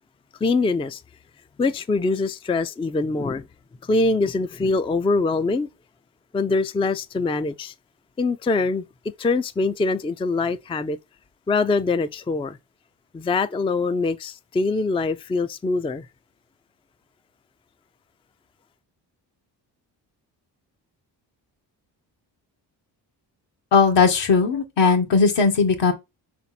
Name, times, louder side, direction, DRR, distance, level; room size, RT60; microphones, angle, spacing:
voice 1, 0.4-1.0 1.6-3.5 3.8-5.7 6.3-7.7 8.2-8.8 9.2-11.0 11.5-12.6 13.1-16.1, left 3 dB, 15° left, 0.4 m, -23 dB
voice 2, 23.7-25.9, left 5 dB, 70° left, 1.8 m, -18 dB
5.1 x 4.3 x 5.8 m
cardioid pair, 100°, 44 cm